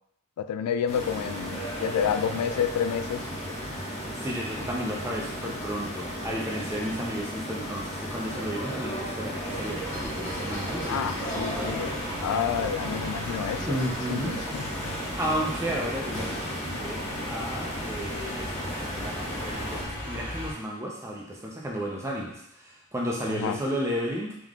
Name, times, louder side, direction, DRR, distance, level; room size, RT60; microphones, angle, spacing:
voice 1, 0.4-3.6 10.9-12.0 12.2-15.0 23.3-23.6, left 8 dB, 90° left, 14 dB, 0.3 m, -30 dB
sound 1, 0.9-19.8, equal, 30° left, 0.8 m, -35 dB
voice 2, 4.1-11.8 13.6-14.4 15.2-19.8 20.1-24.5, equal, 10° right, -2 dB, 0.6 m, -33 dB
sound 2, 9.4-20.5, equal, 55° left, 1.6 m, -37 dB
3.7 x 3.1 x 3.6 m, 0.74 s
head